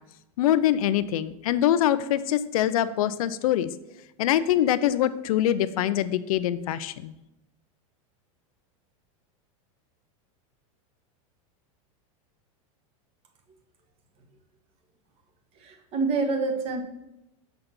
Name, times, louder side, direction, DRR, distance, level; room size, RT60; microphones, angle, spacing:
voice 1, 0.4-3.7 4.2-7.1, left 11 dB, 80° left, 14 dB, 0.5 m, -24 dB
voice 2, 15.6-16.8, right 4 dB, 35° right, 4 dB, 1.2 m, -27 dB
6.7 x 4.1 x 5.9 m, 0.90 s
supercardioid pair, 150°, 18 cm